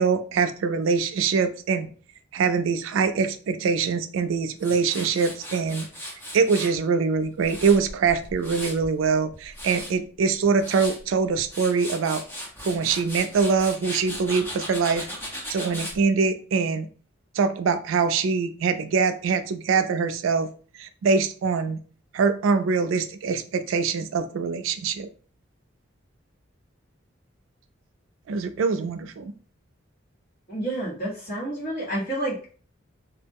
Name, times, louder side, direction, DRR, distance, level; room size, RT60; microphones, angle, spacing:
voice 1, 0.0-1.9 2.3-5.9 6.3-12.2 12.6-15.1 15.5-16.9 17.4-20.5 20.8-21.8 22.1-25.1 28.3-29.3, right 5 dB, 75° right, 9 dB, 0.3 m, -23 dB
Tools, 4.6-6.8 7.2-8.9 9.3-9.9 10.4-11.0 11.4-16.0, equal, 10° left, 0.6 m, -37 dB
voice 2, 30.5-32.5, right 1 dB, 45° left, -5 dB, 1.1 m, -29 dB
2.3 x 2.1 x 3.4 m, 0.41 s
head